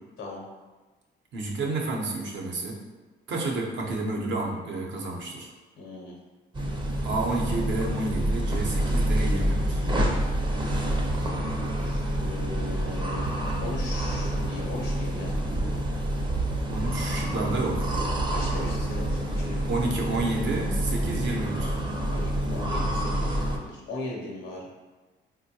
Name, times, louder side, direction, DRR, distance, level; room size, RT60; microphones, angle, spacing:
voice 1, 1.3-2.8 3.3-5.5 7.0-9.8 16.7-18.1 19.7-21.8, right 2 dB, 65° right, 0 dB, 0.7 m, -30 dB
voice 2, 5.8-6.1 11.8-13.3 13.6-15.4 18.3-19.6 22.1-24.7, left 2 dB, 90° left, -2 dB, 0.6 m, -38 dB
sound 1, 6.5-23.6, right 1 dB, 25° right, 0.5 m, -27 dB
4.4 x 2.1 x 2.7 m, 1.3 s
cardioid pair, 90°, 20 cm